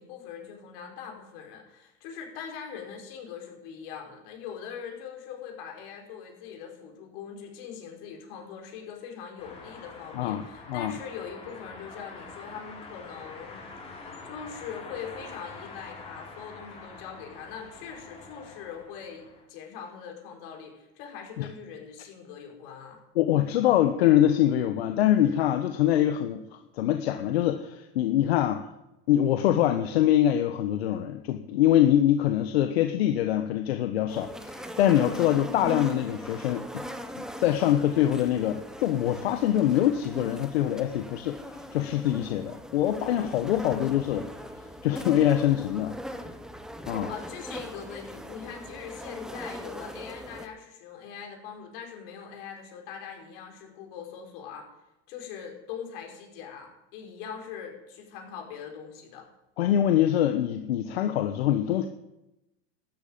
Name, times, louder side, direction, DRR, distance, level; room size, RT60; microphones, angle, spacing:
voice 1, 0.0-13.6 14.2-23.0 47.1-54.7 55.1-59.3, left 7 dB, 65° left, 2 dB, 4.9 m, -42 dB
sound 1, 9.4-19.4, left 3 dB, 20° left, 4.2 m, -45 dB
voice 2, 10.2-10.9 21.4-21.5 23.1-26.4 26.7-28.7 29.1-36.8 37.2-41.4 41.7-44.3 44.8-46.0 46.9-47.1 59.6-61.9, left 11 dB, 90° left, 7 dB, 1.1 m, -24 dB
sound 2, 34.1-50.5, equal, ahead, 1.1 m, -40 dB
12.5 x 8.8 x 8.7 m, 0.92 s
supercardioid pair, 130°, 30 cm